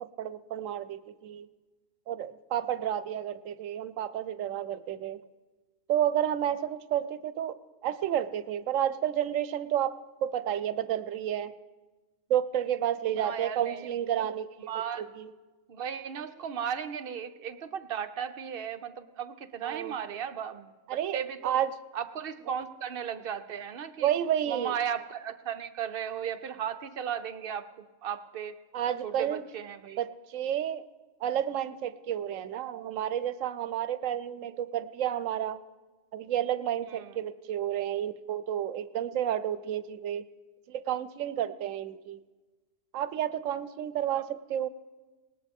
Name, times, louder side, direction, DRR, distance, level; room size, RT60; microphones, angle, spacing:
voice 1, 0.0-1.5 2.1-5.2 5.9-7.6 7.8-11.5 12.3-14.7 15.0-15.3 19.6-19.9 20.9-21.2 21.4-21.7 24.0-24.8 28.7-29.4 30.0-30.8 31.2-35.6 36.1-40.2 40.7-42.2 42.9-44.7, right 10 dB, 80° right, 14 dB, 1.0 m, -31 dB
voice 2, 13.2-13.9 14.2-14.3 14.7-15.0 15.7-21.5 21.9-24.1 24.5-28.6 29.0-30.0 36.9-37.2 44.1-44.2, right 8 dB, 55° right, 10 dB, 0.8 m, -36 dB
19.0 x 18.5 x 3.6 m, 1.2 s
omnidirectional pair, 1.3 m